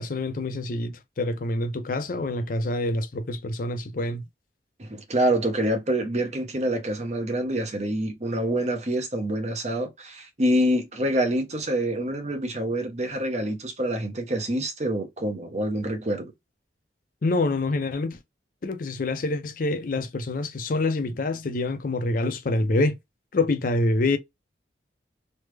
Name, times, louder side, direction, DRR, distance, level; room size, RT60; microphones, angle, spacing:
voice 1, 0.0-4.2 17.2-18.2 18.6-23.0 23.3-24.2, left 2 dB, 50° left, 0.5 m, -26 dB
voice 2, 4.8-16.3, right 1 dB, 40° right, 0.8 m, -26 dB
3.2 x 2.1 x 3.3 m
head